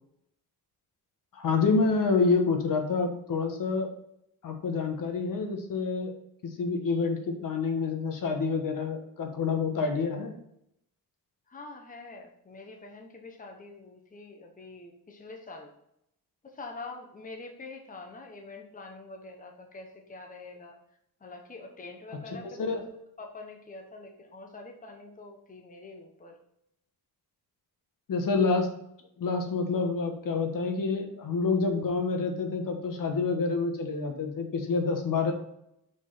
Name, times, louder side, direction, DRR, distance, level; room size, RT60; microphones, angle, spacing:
voice 1, 1.3-3.9 4.4-6.1 6.4-10.3 22.6-22.8 28.1-28.7 29.2-35.3, left 4 dB, 55° left, 4 dB, 1.4 m, -27 dB
voice 2, 11.5-15.7 16.4-20.8 21.2-22.8 23.2-26.4, left 3 dB, 20° left, 2 dB, 1.1 m, -45 dB
6.3 x 5.5 x 5.7 m, 0.77 s
cardioid pair, 135°, 38 cm